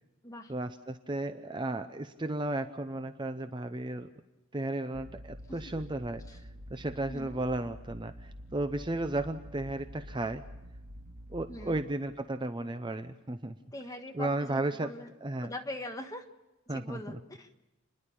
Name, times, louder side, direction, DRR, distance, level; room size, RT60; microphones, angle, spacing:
voice 1, 0.5-4.1 4.5-6.2 6.7-10.4 11.3-13.6 14.1-14.9 15.2-15.5 16.7-17.2, right 2 dB, 20° right, 9 dB, 0.6 m, -34 dB
sound 1, 4.9-11.8, equal, 40° right, 2.8 m, -47 dB
voice 2, 7.1-7.5 11.5-11.8 13.7-15.1 15.4-16.3 16.7-17.5, left 1 dB, 15° left, 4 dB, 1.4 m, -42 dB
30.0 x 11.0 x 8.6 m, 1.0 s
head